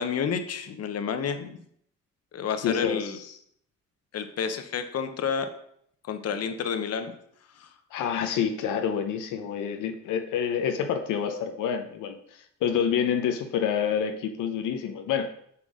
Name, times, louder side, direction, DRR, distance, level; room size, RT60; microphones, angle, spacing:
voice 1, 0.0-1.6 2.3-3.2 4.1-5.5 6.1-7.1 7.6-7.7, left 6 dB, 55° left, 8 dB, 1.0 m, -30 dB
voice 2, 2.6-3.4 7.9-15.3, left 8 dB, 85° left, 5 dB, 0.8 m, -28 dB
6.0 x 5.7 x 4.9 m, 0.67 s
cardioid pair, 90°, 30 cm